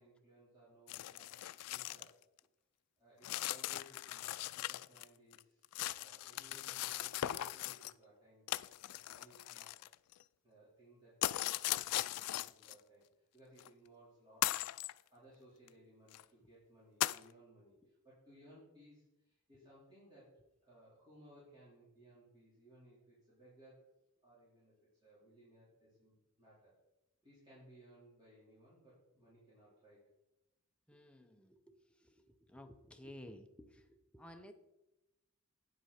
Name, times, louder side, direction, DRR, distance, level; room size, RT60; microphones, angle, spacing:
voice 1, 0.0-2.2 3.0-9.7 10.4-23.8 24.2-26.8 27.2-30.0, right 1 dB, 20° right, 4.0 m, -63 dB
sound 1, 0.9-2.1 2.4-2.5 3.2-5.0 5.3-7.9 8.5-10.2 11.2-12.7 13.6-13.7 14.4-14.9 15.7-15.8 16.1-16.2 17.0-17.2, left 15 dB, 90° left, 0.3 m, -39 dB
voice 2, 30.9-34.5, left 1 dB, 5° left, 0.6 m, -55 dB
9.4 x 8.0 x 4.3 m
head